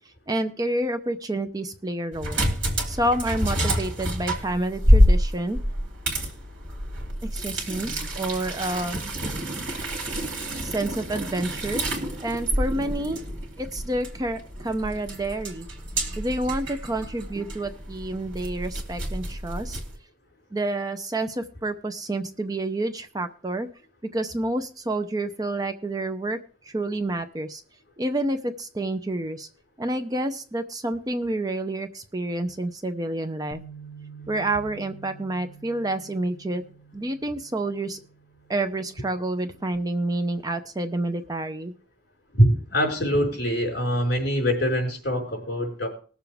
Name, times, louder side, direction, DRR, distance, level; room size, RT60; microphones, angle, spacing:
voice 1, 0.3-2.4 2.8-5.6 7.2-7.9 8.2-9.0 10.6-13.2 13.6-15.7 16.2-19.8 20.5-23.7 24.1-26.4 26.6-27.6 28.0-29.5 29.8-33.6 34.3-36.6 36.9-38.0 38.5-41.7, right 1 dB, 20° right, 8 dB, 0.6 m, -29 dB
sound 1, 2.1-20.0, equal, 70° right, 2.9 m, -27 dB
Bass guitar, 33.5-39.8, right 5 dB, 30° left, 1.1 m, -48 dB
voice 2, 42.3-45.9, equal, 55° left, 0 dB, 4.5 m, -23 dB
20.5 x 7.0 x 3.4 m, 0.41 s
head